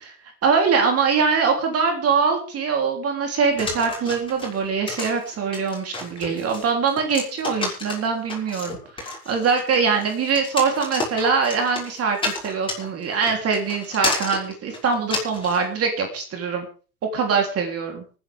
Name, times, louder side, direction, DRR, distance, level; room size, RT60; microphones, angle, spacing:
voice 1, 0.4-16.7 17.1-18.0, right 5 dB, 30° right, 3 dB, 3.5 m, -23 dB
sound 1, 3.6-15.6, left 2 dB, 10° left, 6.3 m, -31 dB
25.0 x 10.0 x 3.6 m, 0.37 s
hypercardioid pair, 115°, 46 cm